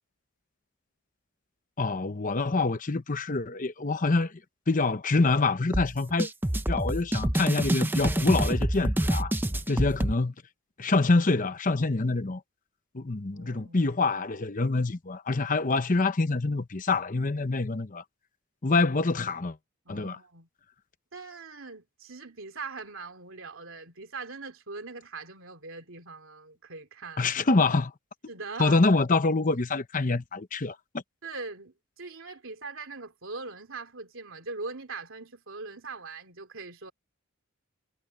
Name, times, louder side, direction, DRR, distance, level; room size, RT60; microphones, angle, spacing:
voice 1, 1.8-4.3 4.7-6.3 6.7-9.3 9.7-10.3 10.8-12.4 12.9-18.0 18.6-19.6 19.9-20.2 27.2-27.9 28.6-31.0, left 3 dB, 40° left, 0.9 m, -26 dB
sound 1, 5.7-10.1, right 1 dB, 10° right, 0.7 m, -27 dB
voice 2, 13.3-13.8 19.8-20.5 21.1-27.3 28.3-28.8 31.2-36.9, right 3 dB, 65° right, 3.1 m, -41 dB
head